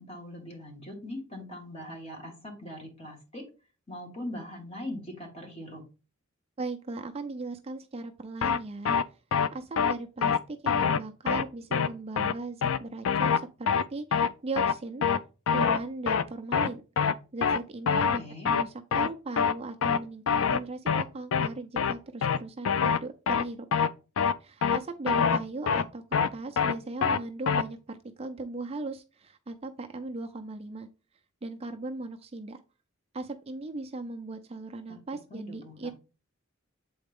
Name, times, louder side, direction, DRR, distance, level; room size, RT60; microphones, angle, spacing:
voice 1, 0.0-3.4 3.9-5.8 17.9-18.5 34.9-35.0 35.3-35.9, left 1 dB, 30° left, 1 dB, 2.0 m, -41 dB
voice 2, 6.6-9.0 9.5-15.1 15.5-16.8 17.3-18.2 18.6-23.7 24.4-30.9 31.4-32.6 33.1-35.9, right 3 dB, 30° right, 5 dB, 0.5 m, -38 dB
sound 1, 8.4-8.6 8.9-9.0 9.3-9.5 9.8-9.9 10.2-10.4 10.7-11.0 11.3-11.4 11.7-11.9 12.2-12.3 12.6-12.8 13.1-13.4 13.7-13.8 14.1-14.3 14.6-14.7 15.0-15.2 15.5-15.8 16.1-16.2 16.5-16.7 17.0-17.1 17.4-17.6 17.9-18.2 18.5-18.6 18.9-19.1 19.4-19.5 19.8-20.0 20.3-20.6 20.9-21.0 21.3-21.5 21.8-21.9 22.2-22.4 22.7-23.0 23.3-23.4 23.7-23.9 24.2-24.3 24.6-24.8 25.1-25.4 25.7-25.8 26.1-26.3 26.6-26.7 27.0-27.2 27.5-27.6, left 6 dB, 75° left, 0.4 m, -24 dB
7.8 x 4.1 x 3.6 m, 0.33 s
head